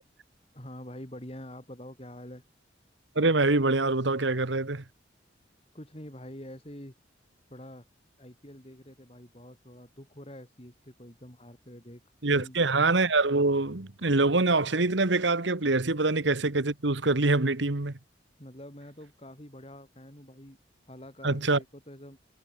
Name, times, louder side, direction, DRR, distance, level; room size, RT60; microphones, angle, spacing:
voice 1, 0.5-2.4 5.7-6.9 7.5-7.9 8.2-12.0 12.3-12.6 18.4-20.6 20.9-22.2, left 1 dB, 30° left, 4.6 m, -46 dB
voice 2, 3.1-4.8 12.2-18.0 21.2-21.6, right 3 dB, 75° right, 1.5 m, -25 dB
head